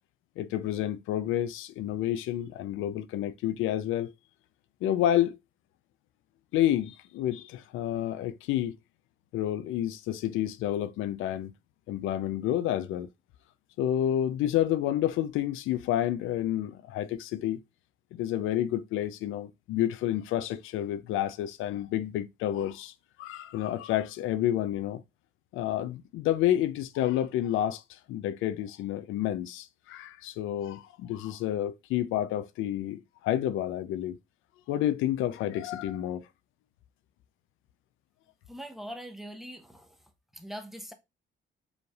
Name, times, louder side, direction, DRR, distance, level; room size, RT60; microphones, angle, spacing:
voice 1, 0.4-4.1 4.8-5.4 6.5-8.8 9.3-11.5 11.9-13.1 13.8-17.6 18.1-22.9 23.2-25.0 25.5-34.2 34.7-36.3, left 12 dB, 85° left, 0.4 m, -29 dB
voice 2, 38.5-40.0 40.3-40.9, equal, ahead, 0.8 m, -42 dB
5.0 x 3.2 x 2.3 m
cardioid pair, 90°, 20 cm